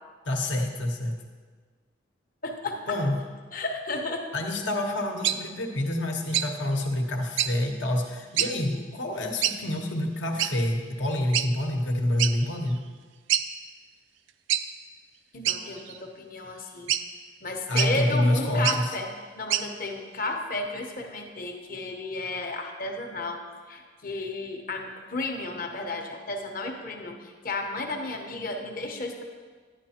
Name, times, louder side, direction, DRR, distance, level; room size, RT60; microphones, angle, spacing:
voice 1, 0.2-1.2 2.9-3.2 4.3-12.8 17.7-19.0, left 1 dB, 70° left, 2 dB, 1.2 m, -27 dB
voice 2, 2.4-3.0 3.5-4.3 15.3-17.0 17.4-19.1 19.3-23.4 23.7-29.2, left 2 dB, 50° left, 3 dB, 1.0 m, -33 dB
sound 1, 5.2-5.4 6.3-6.5 7.4-7.5 8.4-8.5 9.4-9.6 10.4-10.5 11.3-11.5 12.2-12.3 12.8-12.9 13.3-13.5 14.5-14.7 15.4-16.0 16.9-17.0 17.8-17.9 18.5-18.8 19.5-19.7, right 11 dB, 75° right, 0.4 m, -25 dB
11.0 x 10.0 x 2.9 m, 1.5 s
head